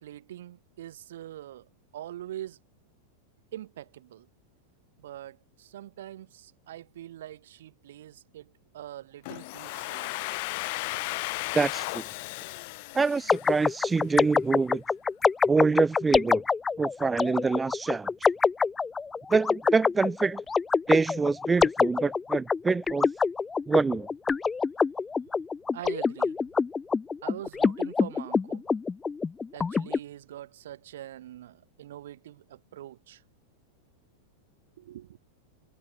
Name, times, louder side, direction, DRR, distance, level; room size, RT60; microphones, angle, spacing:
voice 1, 0.0-2.6 3.5-4.3 5.0-10.1 10.8-11.1 25.7-26.4 27.2-28.7 29.5-33.2 34.8-35.2, right 12 dB, 60° right, 6.3 m, -43 dB
Domestic sounds home sounds, 9.2-14.0, left 26 dB, 50° left, 1.4 m, -35 dB
voice 2, 11.5-12.0 12.9-14.8 15.5-16.4 16.8-18.1 19.3-20.4 20.9-23.1 23.7-24.1, right 4 dB, 15° right, 0.7 m, -25 dB
sound 1, 13.3-30.0, left 5 dB, 15° left, 0.4 m, -26 dB
figure-of-eight pair, 90°, 0 cm